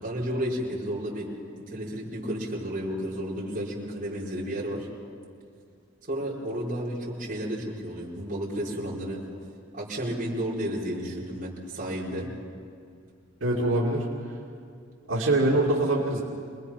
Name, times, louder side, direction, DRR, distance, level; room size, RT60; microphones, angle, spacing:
voice 1, 0.0-1.3 1.6-4.9 6.1-9.2 9.7-12.3, equal, 40° right, -6 dB, 4.9 m, -32 dB
voice 2, 13.4-14.0 15.1-16.2, right 2 dB, 85° right, -4 dB, 2.6 m, -23 dB
27.0 x 20.5 x 5.8 m, 2.3 s
head